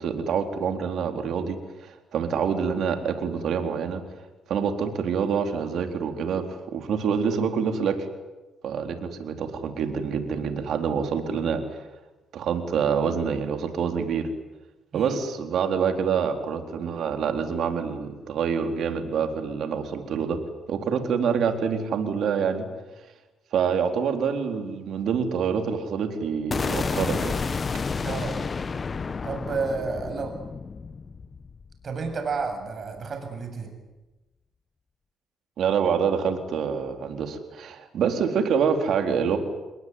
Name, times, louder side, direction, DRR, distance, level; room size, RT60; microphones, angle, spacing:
voice 1, 0.0-4.0 4.5-8.1 8.6-11.8 12.3-14.3 14.9-20.4 20.7-22.7 23.5-27.6 35.6-39.4, right 6 dB, 70° right, 5 dB, 4.1 m, -26 dB
sound 1, 26.5-32.5, left 5 dB, 35° left, 1.1 m, -30 dB
voice 2, 28.0-28.4 29.2-30.4 31.8-33.7, right 4 dB, 45° right, 6 dB, 7.7 m, -31 dB
28.5 x 21.5 x 9.6 m, 1.1 s
cardioid pair, 90°, 0 cm